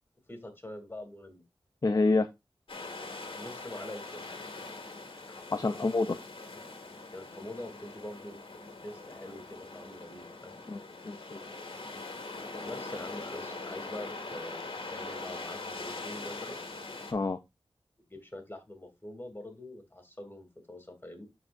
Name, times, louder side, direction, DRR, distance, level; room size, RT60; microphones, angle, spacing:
voice 1, 0.3-1.4 3.4-4.0 7.1-8.4 8.8-10.6 12.6-16.6 18.1-21.3, left 1 dB, 20° left, 5 dB, 3.0 m, -44 dB
voice 2, 1.8-2.3 5.3-6.2 10.7-11.4 17.1-17.4, left 3 dB, 40° left, 9 dB, 0.6 m, -28 dB
sound 1, 2.7-17.1, left 3 dB, 70° left, 2.1 m, -42 dB
13.5 x 4.8 x 2.6 m, 0.21 s
wide cardioid pair, 70°, 9 cm